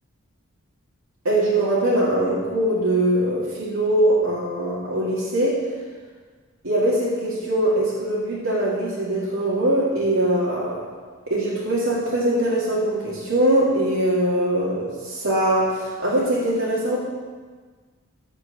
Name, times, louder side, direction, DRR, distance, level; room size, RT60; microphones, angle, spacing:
voice 1, 1.2-5.6 6.6-10.9 11.3-17.0, right 1 dB, 75° right, -8 dB, 2.4 m, -22 dB
15.0 x 5.1 x 6.8 m, 1.5 s
head